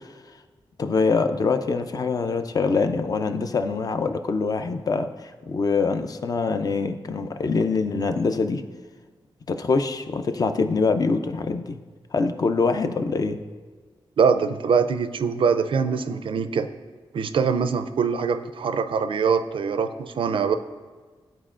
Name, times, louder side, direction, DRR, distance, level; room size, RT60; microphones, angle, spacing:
voice 1, 0.8-8.6 9.5-11.8 12.1-13.4, left 4 dB, 45° left, 8 dB, 0.4 m, -24 dB
voice 2, 14.2-16.7 17.1-20.5, right 6 dB, 70° right, 10 dB, 0.4 m, -23 dB
12.5 x 4.4 x 2.4 m, 1.4 s
wide cardioid pair, 140°, 9 cm